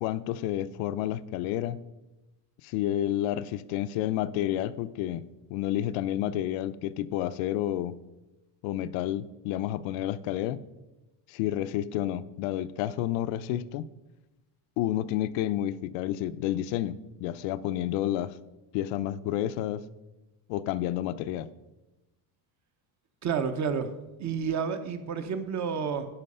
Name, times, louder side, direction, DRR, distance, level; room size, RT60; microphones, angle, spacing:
voice 1, 0.0-1.8 2.6-8.0 8.6-10.6 11.3-13.9 14.8-18.4 18.7-19.8 20.5-21.5, left 12 dB, 75° left, 15 dB, 0.6 m, -30 dB
voice 2, 23.2-23.9 24.2-26.1, right 6 dB, 35° right, 9 dB, 0.8 m, -30 dB
10.0 x 5.7 x 5.4 m, 1.0 s
cardioid pair, 140°, 46 cm